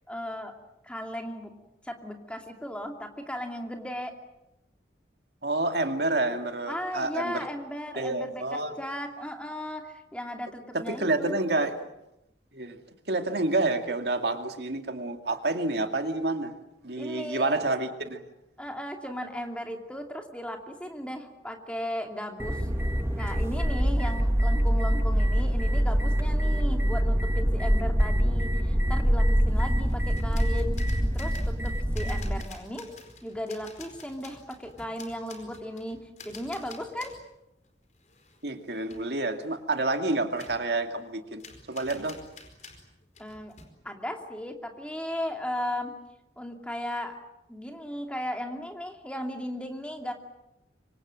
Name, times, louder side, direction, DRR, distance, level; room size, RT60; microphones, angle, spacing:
voice 1, 0.1-0.5 0.8-1.5 1.8-4.1 6.7-11.4 17.0-17.6 18.6-22.7 23.2-32.9 33.2-37.1 43.2-43.5 43.8-45.9 46.4-47.2 47.5-50.1, equal, 5° left, 3 dB, 2.6 m, -36 dB
voice 2, 5.4-7.4 8.0-8.7 10.7-11.8 12.5-12.8 13.1-16.5 16.8-18.2 38.4-41.4 41.7-42.2, right 2 dB, 65° right, 6 dB, 2.4 m, -28 dB
sound 1, 22.4-32.4, equal, 15° right, 1.4 m, -25 dB
sound 2, 29.9-37.3 37.6-38.6 38.9-39.1 40.3-40.7 41.4-43.7, left 4 dB, 40° left, 4.7 m, -49 dB
26.5 x 25.0 x 7.6 m, 0.88 s
head